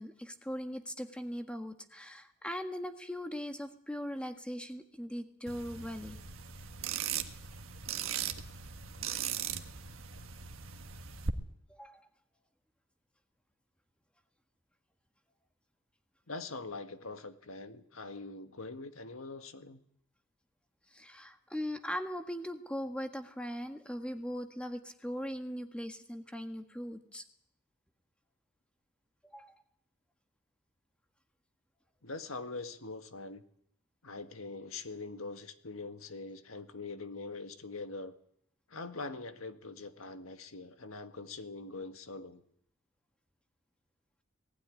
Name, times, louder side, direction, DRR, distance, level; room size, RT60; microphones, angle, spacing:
voice 1, 0.0-6.2 11.7-12.1 20.9-27.2 29.2-29.5, equal, 5° left, 6 dB, 1.7 m, -40 dB
sound 1, 5.5-11.3, right 7 dB, 70° right, 1.6 m, -39 dB
voice 2, 16.3-19.8 32.0-33.4 34.0-38.1 38.7-42.4, left 3 dB, 85° left, 8 dB, 1.7 m, -43 dB
19.0 x 16.0 x 9.9 m, 0.69 s
head